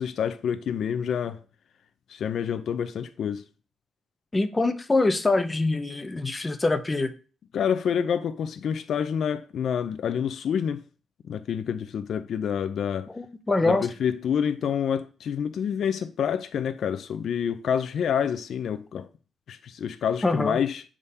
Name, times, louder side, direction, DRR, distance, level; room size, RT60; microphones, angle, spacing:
voice 1, 0.0-1.4 2.1-3.4 7.5-10.8 11.3-13.1 13.6-19.1 19.5-20.8, left 8 dB, 55° left, 0.5 m, -28 dB
voice 2, 4.3-7.1 13.1-13.9 20.2-20.6, left 2 dB, 15° left, 0.6 m, -24 dB
8.2 x 3.7 x 5.4 m
cardioid pair, 175°, 0 cm